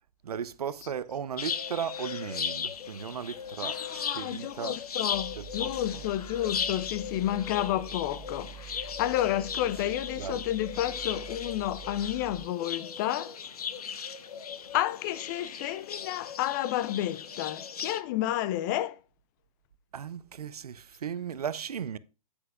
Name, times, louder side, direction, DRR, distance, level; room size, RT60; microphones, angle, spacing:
voice 1, 0.2-4.8 5.4-6.0 10.2-10.4 19.9-22.0, right 8 dB, 80° right, 0.7 m, -36 dB
sound 1, 1.4-18.0, left 7 dB, 75° left, 0.9 m, -37 dB
voice 2, 3.6-13.4 14.7-19.0, left 13 dB, 30° left, 0.5 m, -31 dB
sound 2, 5.1-12.5, right 11 dB, 35° right, 0.7 m, -46 dB
9.7 x 8.7 x 2.4 m
hypercardioid pair, 130°, 19 cm